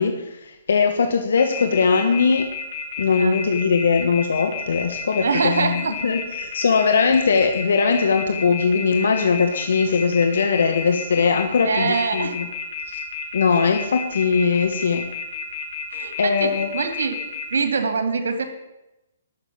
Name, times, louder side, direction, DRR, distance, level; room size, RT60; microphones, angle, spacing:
voice 1, 0.0-2.5 3.0-12.5 13.3-15.1 16.2-16.8, left 5 dB, 70° left, 5 dB, 1.4 m, -20 dB
sound 1, 1.4-17.6, left 7 dB, 45° left, 2.8 m, -31 dB
voice 2, 5.2-5.9 11.6-12.4 15.9-17.2 17.5-18.4, right 5 dB, 70° right, 8 dB, 2.3 m, -24 dB
12.0 x 6.7 x 8.5 m, 0.95 s
hypercardioid pair, 140°, 0 cm